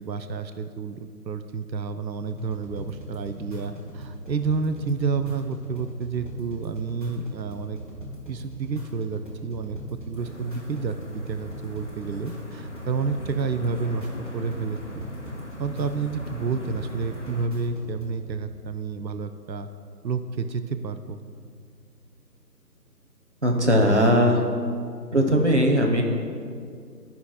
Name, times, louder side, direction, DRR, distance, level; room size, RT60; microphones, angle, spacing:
voice 1, 0.0-7.8 8.3-14.1 14.3-15.0 15.6-19.7 20.0-21.2, right 5 dB, 90° right, 9 dB, 0.6 m, -30 dB
sound 1, 2.3-18.3, equal, 30° right, 1.6 m, -40 dB
sound 2, 10.2-17.5, equal, 45° left, 0.5 m, -41 dB
voice 2, 23.4-24.5 25.1-26.0, equal, 45° right, 2 dB, 0.8 m, -19 dB
12.0 x 5.7 x 2.3 m, 2.2 s
figure-of-eight pair, 165°, 50 cm